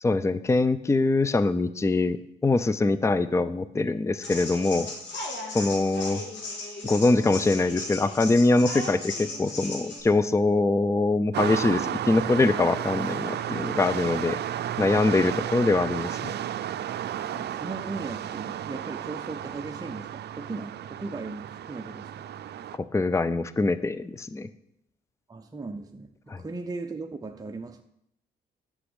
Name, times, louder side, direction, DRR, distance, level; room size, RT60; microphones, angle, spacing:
voice 1, 0.0-2.2 2.4-4.9 5.5-6.2 6.8-14.4 14.8-16.3 22.9-24.5 26.3-26.4, left 3 dB, 15° left, 0.5 m, -23 dB
sound 1, 4.2-10.0, left 2 dB, 65° left, 3.8 m, -36 dB
sound 2, 11.3-22.8, right 10 dB, 55° right, 0.5 m, -33 dB
voice 2, 17.3-22.3 25.3-27.8, right 3 dB, 20° right, 0.8 m, -37 dB
9.9 x 6.2 x 8.1 m
cardioid pair, 90°, 20 cm